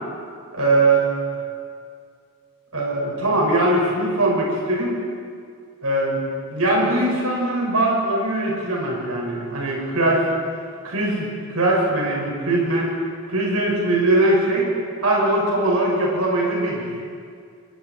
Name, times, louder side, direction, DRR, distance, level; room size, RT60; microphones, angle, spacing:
voice 1, 0.5-1.0 2.7-5.0 5.8-6.2 6.5-10.2 10.8-12.9 13.3-14.7 15.0-16.8, right 2 dB, 85° right, -3 dB, 5.8 m, -21 dB
29.0 x 21.5 x 4.6 m, 2.2 s
head